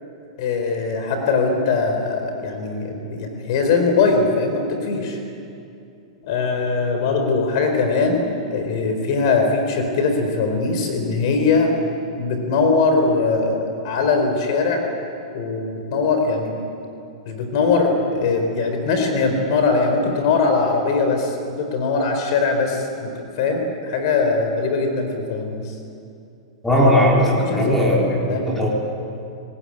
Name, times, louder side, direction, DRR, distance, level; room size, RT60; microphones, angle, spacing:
voice 1, 0.4-5.2 6.2-11.7 12.1-14.8 15.3-16.5 17.3-23.1 23.4-25.7 27.3-28.0 28.3-28.6, left 4 dB, 55° left, 4 dB, 4.2 m, -21 dB
voice 2, 26.6-28.7, equal, 10° left, -3 dB, 4.1 m, -18 dB
26.5 x 20.0 x 8.9 m, 2.6 s
supercardioid pair, 150°, 3 cm